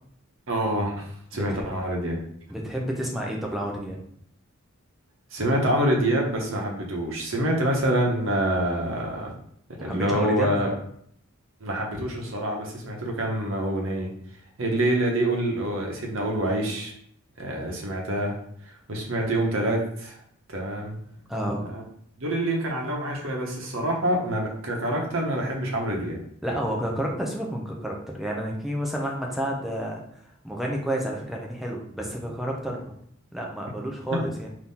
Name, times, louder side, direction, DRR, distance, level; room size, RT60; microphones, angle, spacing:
voice 1, 0.5-2.2 5.3-9.3 9.8-10.7 11.6-14.1 14.6-16.9 17.4-18.3 18.6-20.2 20.5-21.0 21.6-21.8 22.2-26.2, right 1 dB, 65° right, 0 dB, 1.0 m, -26 dB
voice 2, 1.3-1.7 2.5-4.0 9.8-10.8 21.3-21.6 26.4-30.0 30.4-32.9 33.3-34.5, right 1 dB, ahead, -1 dB, 0.6 m, -30 dB
4.1 x 2.8 x 3.6 m, 0.67 s
head